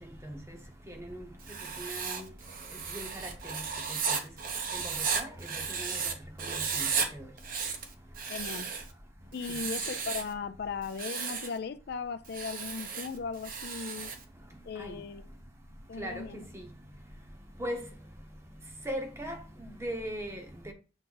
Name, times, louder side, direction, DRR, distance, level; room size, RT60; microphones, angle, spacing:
Writing, 1.4-6.1 6.4-7.1 7.4-8.9 9.4-10.3 10.8-11.5 12.2-14.2, right 6 dB, 45° right, 0.8 m, -34 dB
voice 1, 1.8-2.1 2.9-3.1 5.1-5.3 5.8-6.0 6.8-6.9 14.8-14.9 16.0-16.1 17.6-17.8 18.9-19.3 19.8-20.4 20.7-20.8, equal, 15° right, 0.9 m, -36 dB
voice 2, 8.3-8.7 9.3-14.1 14.7-15.2 15.9-16.4, left 5 dB, 55° left, 0.4 m, -37 dB
7.1 x 3.4 x 3.9 m
head